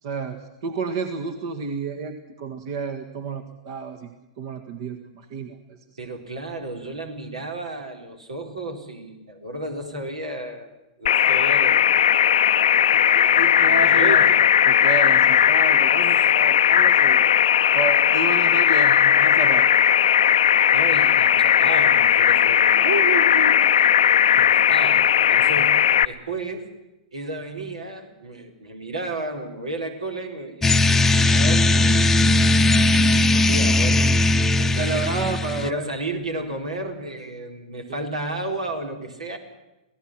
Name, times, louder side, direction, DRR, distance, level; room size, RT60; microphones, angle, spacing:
voice 1, 0.0-4.1 4.4-5.8 12.7-14.2 14.7-17.3 17.7-19.7 24.3-24.5 25.5-25.6 34.6-35.8 37.9-38.0, right 4 dB, 50° right, 7 dB, 1.8 m, -31 dB
voice 2, 6.0-10.7 11.0-12.4 13.6-14.4 20.7-23.9 24.3-26.7 27.1-32.1 32.9-34.1 34.7-35.1 35.6-39.4, right 2 dB, 80° right, 4 dB, 4.2 m, -32 dB
sound 1, 11.1-26.0, left 10 dB, 65° left, 0.7 m, -17 dB
sound 2, 30.6-35.7, left 2 dB, 10° left, 0.9 m, -18 dB
27.0 x 17.5 x 6.1 m, 0.99 s
figure-of-eight pair, 100°, 3 cm